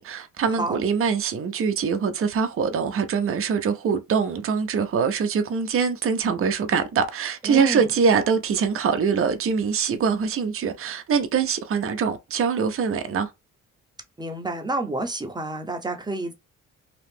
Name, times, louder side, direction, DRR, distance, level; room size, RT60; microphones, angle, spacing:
voice 1, 0.0-13.3, right 6 dB, 45° right, 0.7 m, -23 dB
voice 2, 7.4-7.9 14.2-16.3, right 2 dB, 15° right, 0.9 m, -29 dB
2.9 x 2.4 x 3.5 m
cardioid pair, 90°, 30 cm